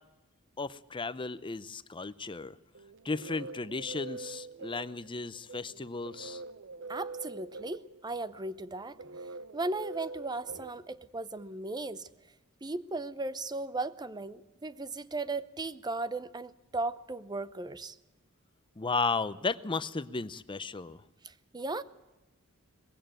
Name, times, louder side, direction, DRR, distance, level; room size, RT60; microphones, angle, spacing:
voice 1, 0.6-2.6 3.0-6.4 18.8-21.0, left 4 dB, 20° left, 0.6 m, -34 dB
sound 1, 2.7-11.4, right 3 dB, 55° right, 0.8 m, -45 dB
voice 2, 6.9-9.0 9.5-12.1 12.6-18.0 21.2-21.8, right 2 dB, 20° right, 0.7 m, -36 dB
20.5 x 15.5 x 9.0 m
head